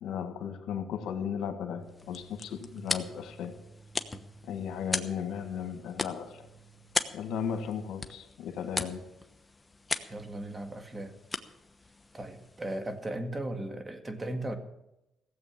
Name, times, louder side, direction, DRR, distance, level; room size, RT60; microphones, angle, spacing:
voice 1, 0.0-3.6 4.4-6.5 7.1-9.0, left 7 dB, 80° left, 7 dB, 1.7 m, -36 dB
sound 1, 1.4-7.0, right 4 dB, 40° left, 1.2 m, -55 dB
sound 2, 1.8-13.1, left 3 dB, 20° left, 1.0 m, -39 dB
voice 2, 10.0-11.1 12.1-14.6, right 1 dB, 25° right, 6 dB, 1.9 m, -37 dB
16.0 x 8.0 x 7.5 m, 0.91 s
cardioid pair, 90°, 0 cm